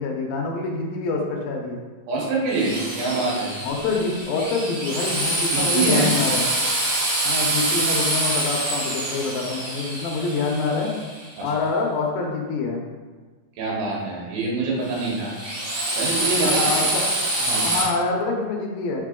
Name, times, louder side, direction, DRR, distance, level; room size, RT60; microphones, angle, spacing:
voice 1, 0.0-1.8 3.6-6.5 7.2-10.9 11.4-12.8 16.4-17.1 17.6-19.1, left 3 dB, 80° left, 1 dB, 2.4 m, -26 dB
voice 2, 2.1-3.5 5.5-6.1 7.5-7.6 11.4-11.5 13.6-15.3 16.0-16.9 17.4-17.7, right 3 dB, 75° right, -4 dB, 3.2 m, -25 dB
Drill, 2.5-11.4 14.8-17.8, right 1 dB, 45° right, 1.2 m, -25 dB
6.5 x 4.0 x 3.7 m, 1.4 s
omnidirectional pair, 4.3 m